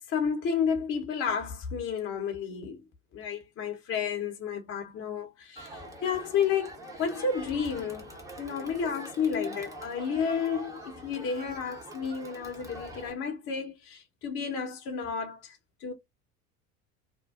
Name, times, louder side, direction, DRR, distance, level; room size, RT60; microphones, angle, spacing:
voice 1, 0.1-2.8 3.1-8.1 8.4-15.9, left 6 dB, 30° left, 0.8 m, -31 dB
Crowd, 5.6-13.1, right 2 dB, 5° right, 0.8 m, -44 dB
2.6 x 2.1 x 2.3 m
figure-of-eight pair, 70°, 45 cm